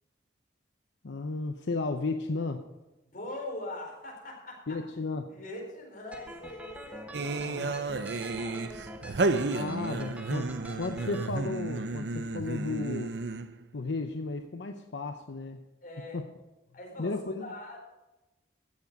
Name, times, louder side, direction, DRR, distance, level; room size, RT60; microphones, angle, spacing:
voice 1, 1.0-2.7 4.7-5.3 7.4-7.7 9.5-10.5 10.8-13.1 13.7-15.7 16.1-16.2 17.0-17.5, left 3 dB, 80° left, 5 dB, 0.7 m, -34 dB
voice 2, 3.1-4.8 5.3-9.6 10.2-10.9 15.8-16.2 16.7-17.8, left 1 dB, 50° left, -1 dB, 4.4 m, -43 dB
sound 1, 6.1-11.3, right 1 dB, 5° right, 0.9 m, -45 dB
sound 2, 7.1-13.6, right 3 dB, 65° right, 0.6 m, -32 dB
14.5 x 7.4 x 5.3 m, 1.0 s
head